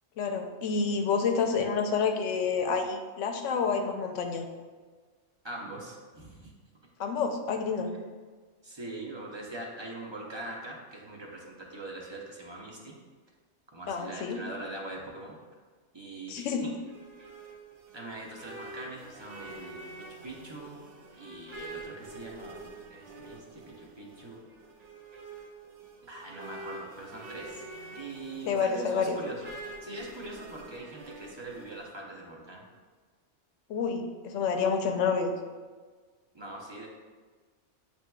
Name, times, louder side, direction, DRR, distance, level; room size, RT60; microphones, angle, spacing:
voice 1, 0.2-4.5 7.0-7.9 13.9-14.4 16.3-16.7 28.5-29.2 33.7-35.3, left 5 dB, 85° left, 5 dB, 0.9 m, -28 dB
voice 2, 5.4-6.5 8.6-12.9 13.7-15.4 15.9-16.7 17.9-19.8 20.2-20.8 21.2-22.6 22.9-24.5 26.1-27.6 27.9-29.5 29.8-32.6 36.3-36.9, right 2 dB, 30° right, -2 dB, 0.5 m, -42 dB
sound 1, 16.6-31.9, right 2 dB, 80° right, 1.0 m, -46 dB
8.3 x 2.8 x 2.2 m, 1.4 s
omnidirectional pair, 1.2 m